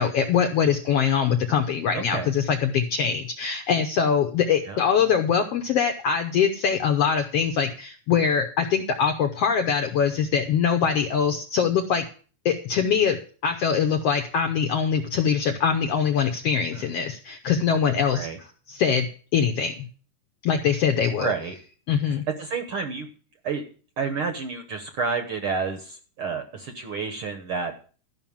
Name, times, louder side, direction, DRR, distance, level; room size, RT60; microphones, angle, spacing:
voice 1, 0.0-12.0 12.4-13.2 13.4-18.3 18.7-19.1 19.3-19.9 20.4-21.3 21.9-22.2, left 7 dB, 75° left, 6 dB, 1.5 m, -23 dB
voice 2, 1.9-2.3 4.6-4.8 16.7-17.0 18.1-18.4 21.1-21.5 22.1-23.1 23.4-23.6 24.0-27.7, right 5 dB, 60° right, 6 dB, 1.5 m, -30 dB
13.0 x 5.8 x 7.2 m, 0.40 s
omnidirectional pair, 3.7 m